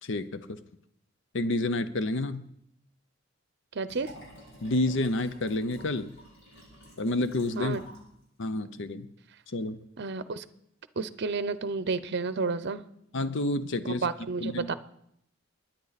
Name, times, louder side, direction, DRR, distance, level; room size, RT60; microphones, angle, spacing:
voice 1, 0.0-0.6 1.3-2.5 4.6-6.2 7.0-7.8 8.4-9.1 9.5-9.8 13.1-14.1 14.4-14.7, left 2 dB, 65° left, 12 dB, 0.7 m, -29 dB
voice 2, 3.7-4.1 7.6-7.8 10.0-10.4 11.0-12.8 13.8-14.7, right 4 dB, 55° right, 14 dB, 0.7 m, -31 dB
Liquid, 3.8-8.1 8.4-8.5, equal, 80° left, 6.5 m, -51 dB
22.5 x 10.0 x 4.1 m, 0.73 s
head